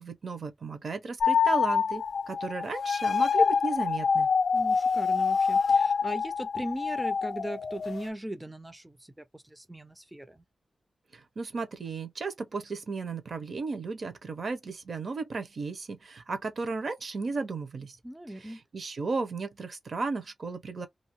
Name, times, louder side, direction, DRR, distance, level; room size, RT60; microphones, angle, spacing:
voice 1, 0.0-4.3 11.1-18.0 18.4-20.9, right 4 dB, 60° right, 0.8 m, -34 dB
sound 1, 1.2-8.1, left 5 dB, 65° left, 0.3 m, -26 dB
voice 2, 4.5-10.4 18.0-18.6, right 1 dB, 10° right, 0.4 m, -38 dB
2.7 x 2.6 x 2.9 m
wide cardioid pair, 100°, 0 cm